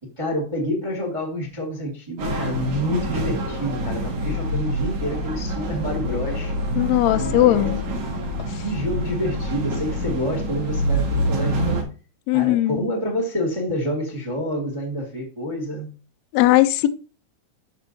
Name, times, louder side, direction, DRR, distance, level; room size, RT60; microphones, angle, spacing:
voice 1, 0.2-6.5 7.2-7.7 8.6-11.9 12.3-15.9, equal, 20° right, 0.7 m, -28 dB
sound 1, 2.2-11.8, equal, 55° right, 2.5 m, -26 dB
voice 2, 6.8-7.8 8.5-8.6 12.3-12.8 16.3-16.9, left 15 dB, 80° left, 1.6 m, -18 dB
12.0 x 4.6 x 2.7 m
omnidirectional pair, 3.7 m